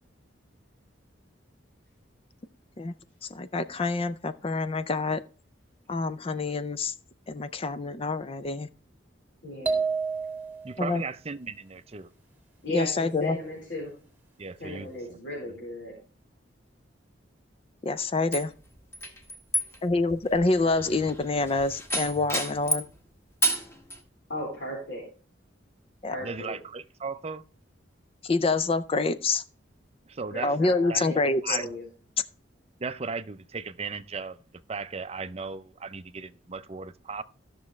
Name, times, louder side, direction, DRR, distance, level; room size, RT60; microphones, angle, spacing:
voice 1, 3.3-5.2 5.9-6.9 7.3-8.7 10.8-11.0 12.7-13.4 17.8-18.5 19.8-22.9 26.0-26.2 28.2-29.4 30.4-31.6, left 3 dB, 30° left, 0.4 m, -26 dB
voice 2, 9.4-9.8 12.6-13.9 14.6-15.9 24.3-25.0 26.0-26.5 30.3-31.8, left 1 dB, 70° left, 4.0 m, -36 dB
sound 1, 9.7-10.8, right 4 dB, 10° right, 1.6 m, -29 dB
voice 3, 10.6-12.1 14.4-15.2 26.2-27.4 30.1-30.5 30.9-31.1 31.4-31.7 32.8-34.4 34.7-37.2, right 4 dB, 35° right, 0.5 m, -36 dB
sound 2, 18.3-23.0 23.4-24.0, equal, 15° left, 1.3 m, -31 dB
15.5 x 6.2 x 3.2 m
head